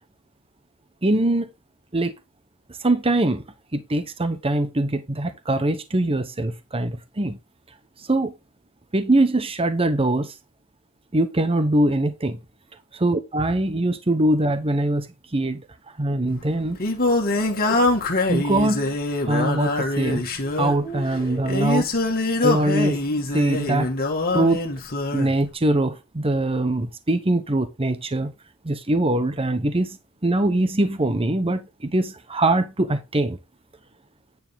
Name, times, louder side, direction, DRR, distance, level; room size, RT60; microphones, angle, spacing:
voice 1, 1.0-1.5 1.9-2.1 2.8-3.4 3.7-7.4 8.0-8.3 8.9-10.3 11.1-12.4 12.9-15.6 16.0-16.8 17.7-17.9 18.3-19.0 19.2-20.2 20.6-21.9 22.4-23.0 23.3-23.9 24.3-24.6 25.1-28.3 28.6-33.4, right 1 dB, 25° right, 1.0 m, -22 dB
Singing, 16.3-25.3, left 2 dB, 45° left, 2.0 m, -24 dB
sound 1, 16.8-18.1 19.5-19.6 20.3-21.7, right 2 dB, 5° left, 4.2 m, -41 dB
9.7 x 6.7 x 3.7 m
head